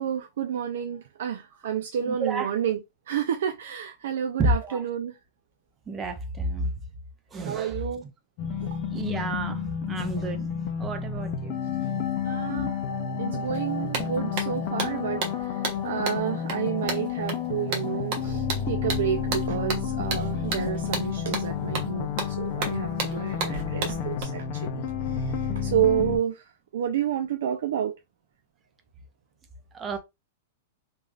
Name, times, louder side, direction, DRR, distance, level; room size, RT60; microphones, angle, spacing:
voice 1, 0.0-5.2 7.4-8.0 8.6-8.8 12.2-12.8 13.2-27.9, right 9 dB, 70° right, 0.3 m, -30 dB
voice 2, 2.1-2.5 4.4-4.8 5.9-6.7 7.3-7.8 8.9-10.5 10.8-11.6 29.7-30.0, right 2 dB, 20° right, 0.6 m, -30 dB
sound 1, 8.4-26.2, left 7 dB, 45° left, 0.5 m, -30 dB
sound 2, 13.5-13.6 13.9-24.2, right 4 dB, 50° right, 1.0 m, -33 dB
sound 3, 19.1-24.3, left 2 dB, 15° left, 0.8 m, -51 dB
3.1 x 2.4 x 2.4 m
hypercardioid pair, 135°, 0 cm